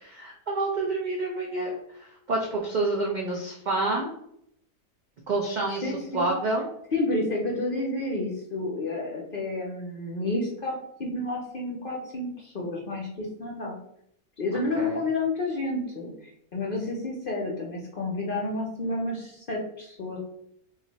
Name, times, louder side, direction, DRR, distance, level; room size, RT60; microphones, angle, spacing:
voice 1, 0.0-4.1 5.3-6.7 14.8-15.0, right 2 dB, 70° right, -1 dB, 0.4 m, -28 dB
voice 2, 5.8-6.3 6.9-13.7 14.4-20.2, left 2 dB, 55° left, -1 dB, 0.6 m, -30 dB
3.1 x 2.4 x 3.9 m, 0.72 s
omnidirectional pair, 1.5 m